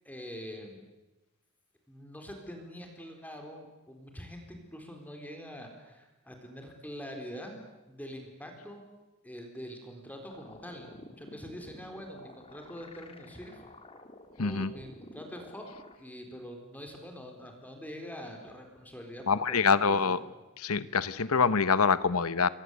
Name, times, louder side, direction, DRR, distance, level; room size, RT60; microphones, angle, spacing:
voice 1, 0.0-0.8 1.9-7.6 7.9-8.8 9.2-13.6 14.4-15.7 16.0-19.6 19.9-20.1, equal, 5° left, 3 dB, 4.1 m, -44 dB
sound 1, 10.3-16.0, left 2 dB, 25° left, 2.0 m, -51 dB
voice 2, 14.4-14.7 19.3-20.2 20.6-22.5, left 5 dB, 80° left, 15 dB, 1.1 m, -25 dB
30.0 x 22.5 x 8.3 m, 1.1 s
head